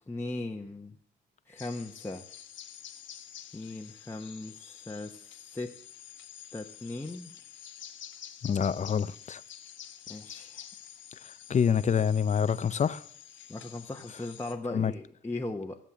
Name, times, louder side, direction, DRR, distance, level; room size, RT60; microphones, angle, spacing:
voice 1, 0.1-1.0 1.5-2.2 3.5-5.2 5.5-5.7 6.5-7.3 10.1-10.7 13.5-15.8, left 2 dB, 10° left, 0 dB, 1.1 m, -38 dB
sound 1, 1.6-14.5, left 10 dB, 75° left, 1.4 m, -48 dB
voice 2, 8.4-9.4 11.2-13.0 14.7-14.9, left 7 dB, 35° left, 15 dB, 0.7 m, -27 dB
16.5 x 7.5 x 7.4 m, 0.66 s
cardioid pair, 90°, 20 cm